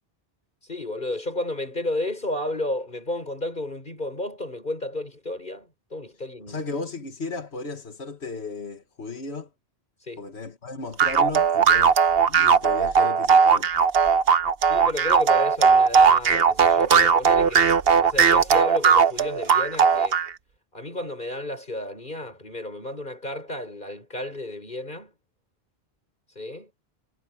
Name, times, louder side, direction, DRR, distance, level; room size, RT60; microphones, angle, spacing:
voice 1, 0.6-6.6 10.0-10.2 14.7-20.2 20.7-25.1 26.3-26.7, left 1 dB, 50° left, 6.4 m, -32 dB
voice 2, 6.5-9.5 10.2-12.0 12.3-13.7, left 3 dB, 85° left, 2.1 m, -34 dB
sound 1, 11.0-20.3, right 6 dB, 65° right, 1.2 m, -18 dB
omnidirectional pair, 1.1 m